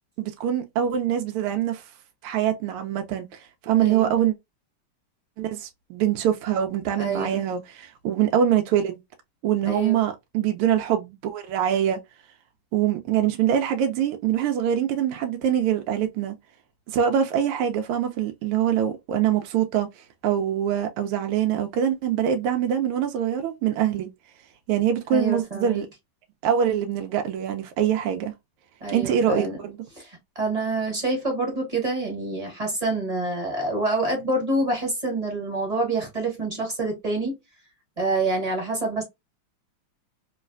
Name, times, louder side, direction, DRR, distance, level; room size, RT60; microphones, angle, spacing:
voice 1, 0.2-1.9 2.2-4.3 5.4-9.0 9.4-12.0 12.7-16.3 16.9-24.1 24.7-25.9 26.4-28.3 28.9-29.8, right 9 dB, 80° right, 1.5 m, -24 dB
voice 2, 3.7-4.1 7.0-7.4 9.6-10.0 25.1-25.8 28.8-29.6 29.9-37.3 38.0-39.0, right 2 dB, 20° right, 1.2 m, -27 dB
3.1 x 3.1 x 2.5 m
omnidirectional pair, 2.4 m